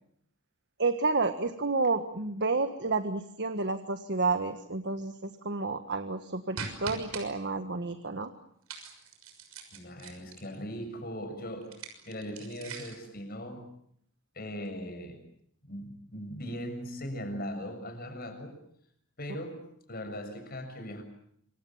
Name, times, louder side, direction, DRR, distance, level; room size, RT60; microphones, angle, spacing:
voice 1, 0.8-8.3, right 3 dB, 55° right, 8 dB, 1.6 m, -30 dB
sound 1, 6.6-7.3 8.7-10.6 11.6-13.1, right 5 dB, 90° right, 6.4 m, -42 dB
voice 2, 9.7-11.7 12.1-13.6 14.4-15.2 15.6-18.6 19.2-19.6 19.9-21.0, equal, 45° left, 6 dB, 7.0 m, -39 dB
27.5 x 25.5 x 7.3 m, 0.69 s
head